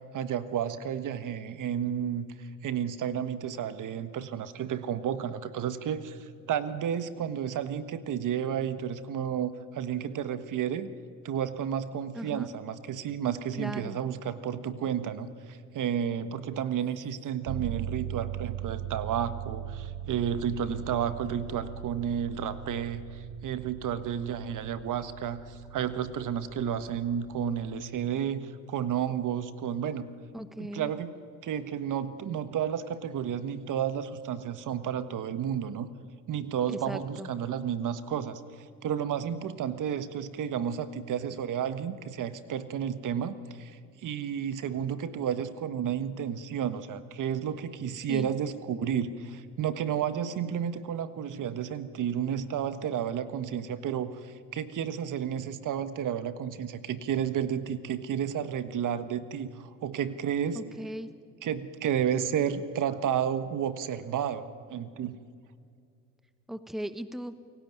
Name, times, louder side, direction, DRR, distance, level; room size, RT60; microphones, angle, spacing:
voice 1, 0.1-10.9 11.2-30.1 30.6-31.1 31.4-35.9 36.3-60.6 61.4-65.2, right 8 dB, 60° right, 12 dB, 1.5 m, -32 dB
voice 2, 12.1-12.5 13.6-14.0 30.3-30.9 36.7-37.3 48.1-48.3 60.5-61.1 66.5-67.3, equal, ahead, 12 dB, 1.1 m, -37 dB
sound 1, 17.5-27.6, right 11 dB, 85° right, 1.4 m, -40 dB
28.5 x 17.5 x 9.3 m, 2.2 s
supercardioid pair, 85°, 35 cm